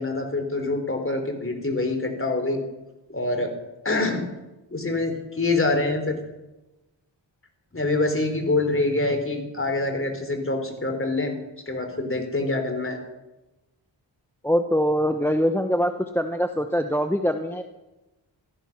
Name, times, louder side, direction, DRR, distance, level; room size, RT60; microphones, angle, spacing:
voice 1, 0.0-2.6 3.1-3.5 3.8-4.2 4.7-6.2 7.7-11.4 11.7-13.0, left 2 dB, 25° left, 5 dB, 3.7 m, -25 dB
voice 2, 14.4-17.6, equal, 5° left, 7 dB, 1.0 m, -23 dB
16.0 x 14.0 x 6.0 m, 1.0 s
cardioid pair, 65°, 46 cm